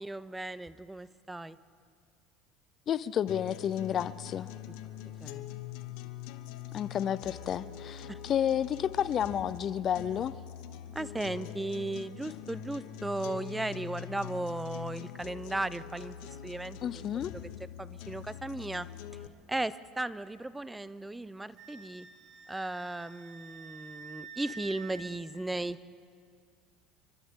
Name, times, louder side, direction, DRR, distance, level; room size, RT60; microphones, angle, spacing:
voice 1, 0.0-1.6 5.2-5.5 8.1-8.2 10.9-16.2 16.4-17.1 17.8-18.9 19.5-22.1 22.5-25.8, right 2 dB, 10° right, 17 dB, 0.6 m, -36 dB
voice 2, 2.9-4.5 6.7-10.4 16.8-17.3, left 9 dB, 45° left, 17 dB, 0.5 m, -31 dB
sound 1, 3.3-19.3, left 11 dB, 70° left, 1.0 m, -43 dB
Wind instrument woodwind instrument, 21.6-25.1, right 5 dB, 60° right, 1.4 m, -48 dB
29.5 x 24.5 x 3.7 m, 2.2 s
hypercardioid pair, 85°, 0 cm